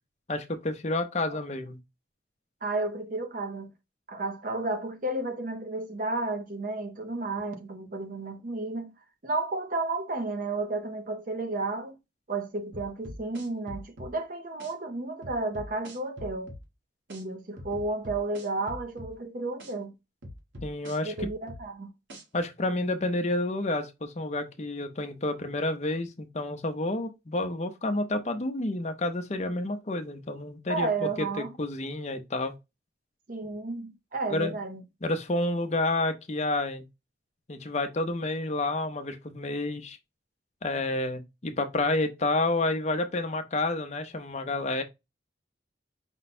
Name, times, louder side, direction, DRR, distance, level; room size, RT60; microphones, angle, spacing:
voice 1, 0.3-1.8 20.6-21.3 22.3-31.3 31.6-32.5 34.3-34.5 35.0-36.8 37.5-40.0 40.6-44.8, left 2 dB, 40° left, 0.6 m, -29 dB
voice 2, 2.6-3.7 4.1-8.9 9.2-12.0 12.3-16.5 17.1-19.9 21.0-21.9 30.7-31.5 33.3-34.8, right 2 dB, 45° right, 0.7 m, -32 dB
sound 1, 12.7-14.1 14.6-14.7 15.2-16.6 17.1-17.2 17.6-19.1 19.6-19.7 20.2-21.6 22.1-22.2, equal, 85° right, 1.3 m, -42 dB
5.2 x 2.2 x 4.2 m
head